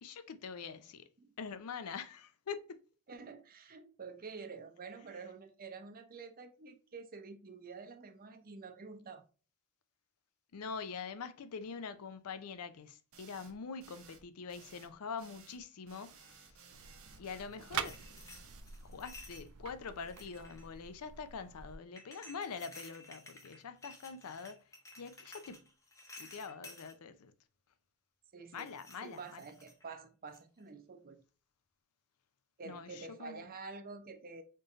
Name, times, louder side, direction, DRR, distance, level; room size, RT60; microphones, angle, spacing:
voice 1, 0.0-1.1 1.4-2.8 10.5-16.6 17.2-18.0 18.8-24.7 25.0-25.7 26.2-27.3 28.5-29.4 32.6-33.5, left 5 dB, 80° left, 0.5 m, -44 dB
voice 2, 3.1-9.2 28.3-28.8 29.0-31.2 32.6-34.4, right 4 dB, 40° right, 0.6 m, -48 dB
sound 1, 13.1-13.5 13.8-14.2 14.5-14.9 15.2-15.6 15.9-18.6, right 6 dB, 65° right, 0.9 m, -58 dB
sound 2, 16.7-21.8, right 8 dB, 85° right, 0.5 m, -45 dB
sound 3, 17.4-19.5 20.0-20.8 22.0-26.9 28.5-30.0 30.3-30.6, left 2 dB, 15° left, 0.7 m, -54 dB
4.4 x 3.1 x 2.5 m
head